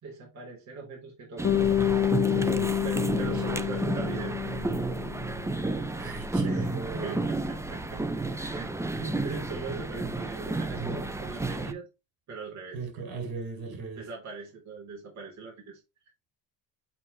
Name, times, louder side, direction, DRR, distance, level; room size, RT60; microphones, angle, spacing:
voice 1, 0.0-1.6 2.8-4.4 6.4-11.9 12.3-12.8 14.0-15.8, right 4 dB, 45° right, 3.7 m, -40 dB
Bass guitar, 1.4-5.7, left 10 dB, 35° left, 1.3 m, -28 dB
sound 1, 1.4-11.7, right 2 dB, 5° right, 0.7 m, -32 dB
voice 2, 6.0-7.2 8.4-8.5 10.8-11.0 12.7-14.1, right 4 dB, 65° right, 4.4 m, -38 dB
8.5 x 4.8 x 3.2 m
cardioid pair, 110°, 40 cm